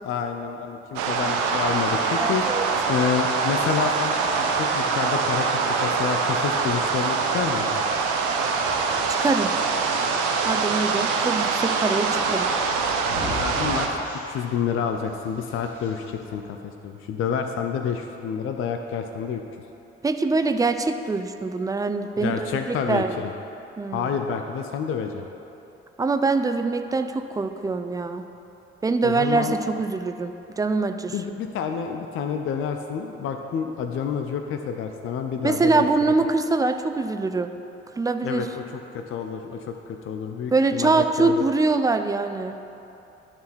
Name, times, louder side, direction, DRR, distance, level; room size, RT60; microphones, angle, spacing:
voice 1, 0.0-2.4 2.9-7.8 13.3-14.0 14.3-19.4 22.2-23.3 23.9-25.3 29.0-29.6 31.1-35.9 36.2-36.3 38.2-38.6 38.9-41.4, left 7 dB, 40° left, 5 dB, 0.6 m, -29 dB
sound 1, 1.0-13.9, right 4 dB, 65° right, 0.8 m, -24 dB
voice 2, 2.1-2.7 9.1-9.5 10.4-12.5 20.0-23.1 23.8-24.1 26.0-28.2 28.8-31.1 35.4-37.5 38.0-38.5 40.5-42.6, right 3 dB, 10° right, 8 dB, 0.4 m, -24 dB
sound 2, 4.2-16.3, left 1 dB, 80° left, 2.0 m, -43 dB
12.0 x 4.4 x 4.3 m, 2.9 s
figure-of-eight pair, 45°, 34 cm